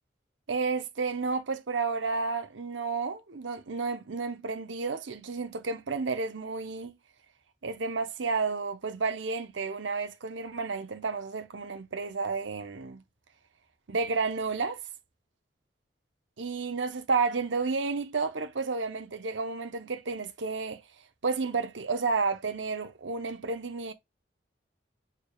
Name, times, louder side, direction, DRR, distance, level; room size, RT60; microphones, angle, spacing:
voice 1, 0.5-7.0 7.6-13.0 13.9-14.8 16.4-20.8 21.2-23.9, right 4 dB, 90° right, 0.8 m, -31 dB
6.5 x 3.5 x 2.3 m
head